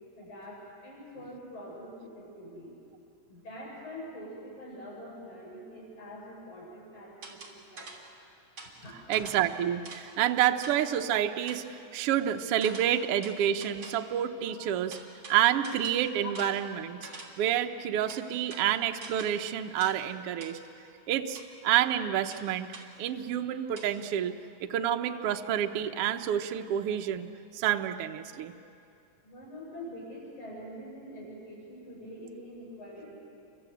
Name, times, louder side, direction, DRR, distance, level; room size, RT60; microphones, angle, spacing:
voice 1, 0.2-2.7 3.3-7.9 8.8-9.2 14.4-14.5 16.2-16.3 29.2-33.2, equal, 80° left, -5 dB, 8.1 m, -45 dB
sound 1, 7.2-8.2 8.6-10.2 10.6-11.0 11.5-11.7 12.6-14.2 14.9-17.5 18.1-19.5 19.8-20.1 20.4-20.6 21.3-21.5 22.3-23.0 23.8-23.9, right 3 dB, 45° right, 3.8 m, -47 dB
voice 2, 9.1-15.0 15.3-17.1 17.4-20.6 21.1-24.3 24.6-27.3 27.5-28.5, right 10 dB, 65° right, 5 dB, 1.6 m, -28 dB
30.0 x 24.5 x 8.0 m, 2.6 s
omnidirectional pair, 3.4 m